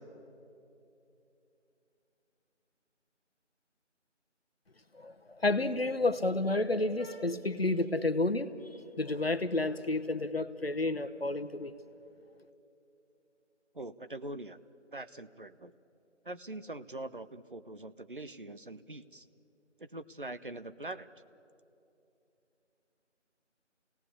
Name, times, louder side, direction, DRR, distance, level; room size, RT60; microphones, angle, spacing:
voice 1, 4.9-8.5 9.0-11.7, left 2 dB, 55° left, 10 dB, 1.1 m, -30 dB
voice 2, 13.7-14.6 14.9-15.7 16.3-19.2 19.8-21.1, right 2 dB, 45° right, 12 dB, 0.7 m, -43 dB
27.5 x 18.0 x 8.3 m, 2.8 s
figure-of-eight pair, 170°, 36 cm